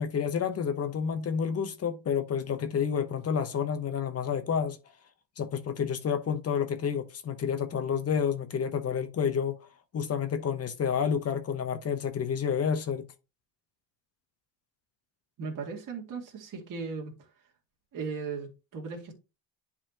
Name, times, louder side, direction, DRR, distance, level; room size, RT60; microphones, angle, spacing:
voice 1, 0.0-4.8 5.4-9.6 9.9-13.0, left 7 dB, 35° left, 0.9 m, -29 dB
voice 2, 15.4-17.1 17.9-19.1, right 5 dB, 50° right, 2.3 m, -37 dB
10.5 x 4.1 x 2.9 m
cardioid pair, 135°, 43 cm